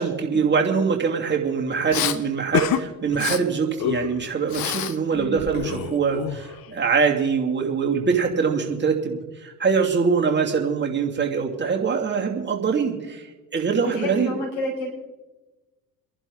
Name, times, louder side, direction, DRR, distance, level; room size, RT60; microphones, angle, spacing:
voice 1, 0.0-13.3 13.5-14.3, right 5 dB, 20° right, 0 dB, 2.8 m, -23 dB
Respiratory sounds, 1.9-2.2 2.5-2.8 3.1-3.4 3.8-5.0 5.2-6.7, left 10 dB, 45° left, 1.1 m, -27 dB
voice 2, 5.1-5.4 13.8-14.9, left 1 dB, 65° left, -1 dB, 5.3 m, -29 dB
30.0 x 11.0 x 3.9 m, 1.2 s
figure-of-eight pair, 60°, 49 cm